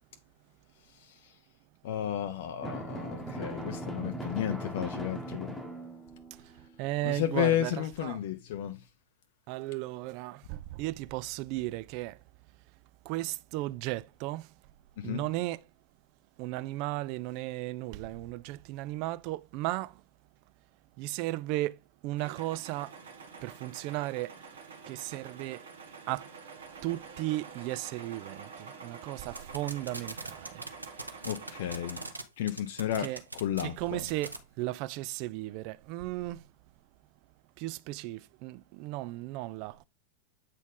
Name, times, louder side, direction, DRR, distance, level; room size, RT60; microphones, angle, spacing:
voice 1, 0.9-1.4 1.8-5.6 7.0-8.9 15.0-15.2 31.2-32.0 32.4-33.1 33.4-34.0, left 11 dB, 55° left, 0.5 m, -33 dB
Drum, 2.6-6.4, right 1 dB, 5° left, 1.2 m, -39 dB
voice 2, 6.3-8.2 9.5-12.2 13.0-14.5 15.0-15.6 16.4-20.0 21.0-23.0 23.4-25.7 26.1-26.3 26.8-30.6 33.0-33.2 33.6-36.5 37.6-39.8, right 18 dB, 45° right, 0.3 m, -35 dB
sound 1, 22.2-32.1, right 5 dB, 65° right, 1.3 m, -48 dB
sound 2, 29.3-32.2 32.5-33.6 34.1-34.4, right 2 dB, 80° right, 0.7 m, -39 dB
8.1 x 4.2 x 3.6 m
figure-of-eight pair, 90°, 0 cm